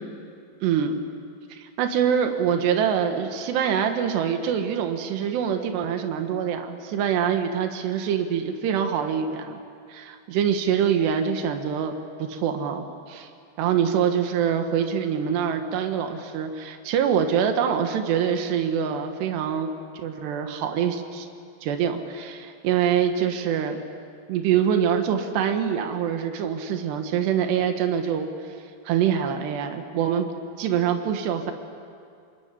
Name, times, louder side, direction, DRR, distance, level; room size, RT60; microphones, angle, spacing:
voice 1, 0.6-1.0 1.5-9.6 9.9-11.9 12.2-13.3 13.6-19.7 20.0-21.3 21.6-23.8 24.3-28.3 28.9-30.3 30.6-31.5, right 8 dB, 80° right, 6 dB, 3.6 m, -25 dB
27.0 x 22.0 x 9.8 m, 2.3 s
omnidirectional pair, 4.8 m